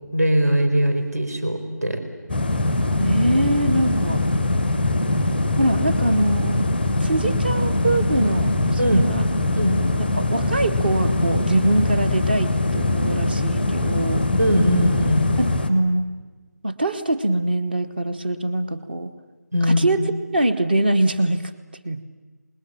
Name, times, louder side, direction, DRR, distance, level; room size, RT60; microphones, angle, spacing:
voice 1, 0.1-2.0 8.8-9.1 9.6-9.8 14.4-15.2 19.5-19.9, equal, 60° right, 7 dB, 4.6 m, -20 dB
sound 1, 2.3-15.7, left 2 dB, ahead, 0.8 m, -22 dB
voice 2, 3.0-4.2 5.6-6.7 7.0-9.2 10.1-14.3 15.4-16.1 16.6-19.1 19.6-20.0 20.3-21.5 21.8-22.0, right 1 dB, 30° right, 9 dB, 1.3 m, -23 dB
26.5 x 20.0 x 8.8 m, 1.3 s
figure-of-eight pair, 165°, 10 cm